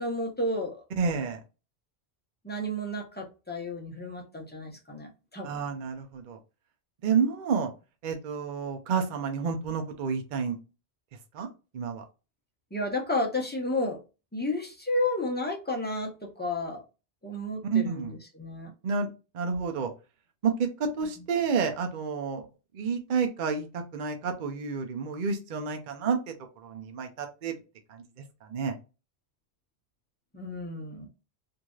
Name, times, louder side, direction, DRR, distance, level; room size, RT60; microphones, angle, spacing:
voice 1, 0.0-0.8 2.4-5.6 12.7-14.0 14.3-16.8 17.2-18.7 30.3-31.1, left 1 dB, 10° left, 0 dB, 0.6 m, -32 dB
voice 2, 1.0-1.4 5.4-6.4 7.0-7.7 8.0-10.6 11.3-11.5 11.7-12.0 17.7-18.1 18.8-19.1 19.3-19.9 20.4-22.4 22.7-26.2 26.6-27.5 27.9-28.0 28.5-28.7, right 5 dB, 55° right, 4 dB, 0.7 m, -29 dB
3.1 x 2.6 x 2.3 m, 0.30 s
omnidirectional pair, 1.1 m